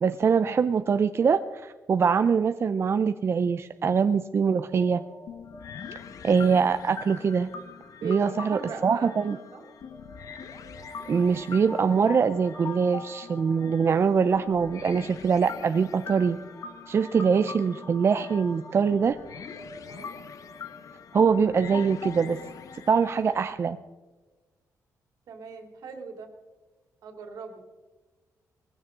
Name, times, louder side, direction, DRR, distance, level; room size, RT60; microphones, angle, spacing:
voice 1, 0.0-5.0 6.2-7.5 8.0-9.4 11.1-16.4 16.9-19.2 21.1-22.4 22.9-23.8, right 6 dB, 45° right, 9 dB, 0.5 m, -23 dB
sound 1, 4.6-8.0 8.6-21.1, equal, 40° left, 4.1 m, -50 dB
sound 2, 5.3-23.4, left 6 dB, 65° left, 1.0 m, -42 dB
voice 2, 8.0-9.6 19.9-20.1 25.3-26.3 27.0-27.6, right 5 dB, 80° right, 3 dB, 2.8 m, -39 dB
20.0 x 15.5 x 3.8 m, 1.3 s
cardioid pair, 120°, 6 cm